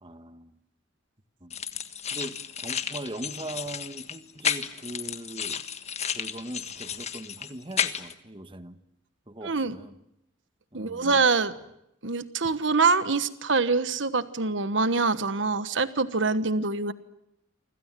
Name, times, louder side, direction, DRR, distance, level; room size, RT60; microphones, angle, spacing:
voice 1, 0.0-0.5 1.4-1.5 2.1-5.6 6.1-8.8 9.3-9.9 10.7-11.1, right 1 dB, 25° right, 1.6 m, -40 dB
sound 1, 1.5-8.1, left 7 dB, 35° left, 1.5 m, -32 dB
voice 2, 9.4-9.8 10.7-11.5 12.0-16.9, right 4 dB, 65° right, 1.3 m, -25 dB
29.0 x 26.0 x 7.6 m
head